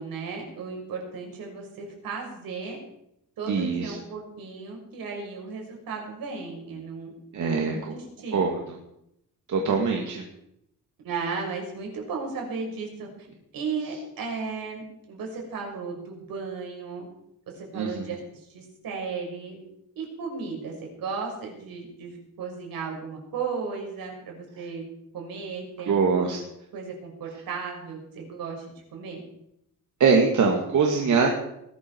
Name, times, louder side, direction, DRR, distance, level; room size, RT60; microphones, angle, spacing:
voice 1, 0.0-2.8 3.4-7.1 7.4-8.5 11.0-13.1 13.5-17.1 17.6-19.6 20.0-24.8 25.1-26.3 26.7-28.7 28.9-29.2, right 5 dB, 75° right, 1 dB, 6.0 m, -35 dB
voice 2, 3.5-4.0 7.3-7.9 8.3-8.5 9.5-10.2 17.7-18.1 25.9-26.4 30.0-31.3, right 5 dB, 55° right, 1 dB, 2.4 m, -23 dB
20.0 x 12.5 x 4.8 m, 0.79 s
cardioid pair, 150°, 35 cm